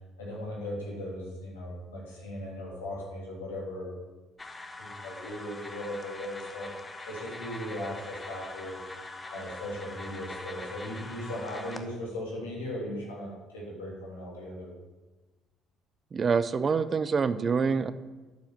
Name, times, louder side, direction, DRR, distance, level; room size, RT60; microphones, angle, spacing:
voice 1, 0.2-3.9 4.8-8.8 9.3-14.7, left 1 dB, 90° left, -3 dB, 3.1 m, -38 dB
sound 1, 4.4-11.8, left 2 dB, 20° left, 1.1 m, -43 dB
voice 2, 16.1-17.9, right 5 dB, 40° right, 14 dB, 0.6 m, -26 dB
9.1 x 7.1 x 7.0 m, 1.2 s
hypercardioid pair, 55°, 0 cm